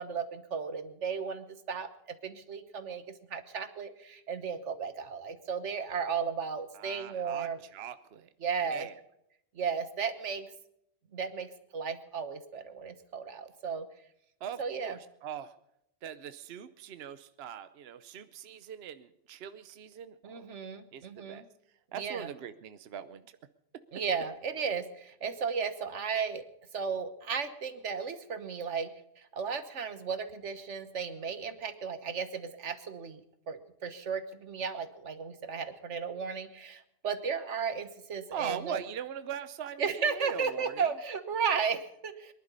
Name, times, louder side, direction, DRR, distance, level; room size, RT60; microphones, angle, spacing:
voice 1, 0.0-1.9 2.2-3.0 3.3-7.6 8.4-8.9 9.5-10.5 11.1-13.9 14.6-15.0 20.2-21.4 21.9-22.3 23.9-26.4 26.7-28.9 29.2-33.2 33.5-38.8 39.8-42.3, right 6 dB, 90° right, 10 dB, 1.6 m, -34 dB
voice 2, 6.7-8.3 8.6-9.0 14.4-15.5 16.0-20.5 20.9-21.4 21.9-23.4 38.3-40.9, right 9 dB, 65° right, 11 dB, 0.9 m, -41 dB
23.0 x 11.0 x 5.4 m, 0.79 s
omnidirectional pair, 1.2 m